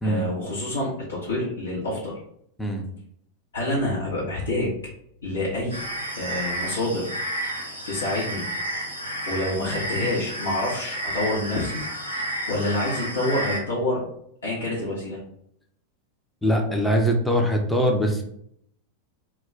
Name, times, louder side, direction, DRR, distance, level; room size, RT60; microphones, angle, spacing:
voice 1, 0.0-2.1 3.5-4.7 5.2-5.8 6.2-7.1 7.9-8.4 9.2-11.8 12.5-14.0 14.4-15.2, left 1 dB, 70° left, -5 dB, 0.7 m, -27 dB
sound 1, 5.7-13.6, right 1 dB, 90° right, 0.6 m, -31 dB
voice 2, 16.4-18.2, equal, ahead, 1 dB, 0.5 m, -22 dB
2.3 x 2.2 x 3.6 m, 0.71 s
figure-of-eight pair, 90°, 0 cm